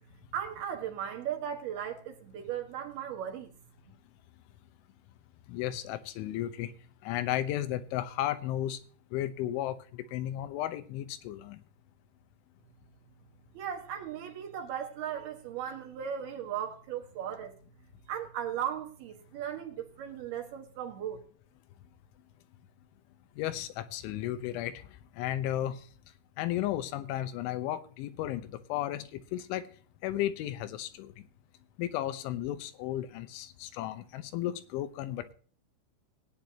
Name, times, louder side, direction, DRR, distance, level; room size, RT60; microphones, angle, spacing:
voice 1, 0.3-3.5 13.5-17.5 18.1-21.2, right 9 dB, 65° right, 3.2 m, -37 dB
voice 2, 5.5-6.7 7.0-8.8 9.1-9.8 10.1-11.6 23.4-24.8 25.2-25.8 26.4-29.6 30.0-31.1 31.8-35.3, left 13 dB, 85° left, 3.3 m, -34 dB
17.5 x 9.4 x 2.9 m
omnidirectional pair, 5.4 m